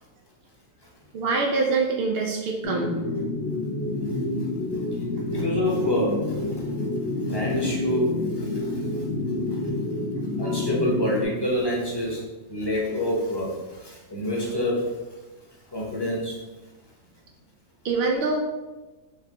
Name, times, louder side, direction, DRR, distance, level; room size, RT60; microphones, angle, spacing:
voice 1, 1.1-3.0 17.8-18.4, right 4 dB, 80° right, 0 dB, 0.5 m, -24 dB
sound 1, 2.6-11.2, left 2 dB, 60° left, 0.8 m, -28 dB
voice 2, 4.1-4.5 4.9-9.1 9.5-9.7 10.4-15.1 15.7-16.4, equal, 20° left, -4 dB, 0.8 m, -28 dB
4.9 x 3.3 x 2.9 m, 1.1 s
omnidirectional pair, 1.6 m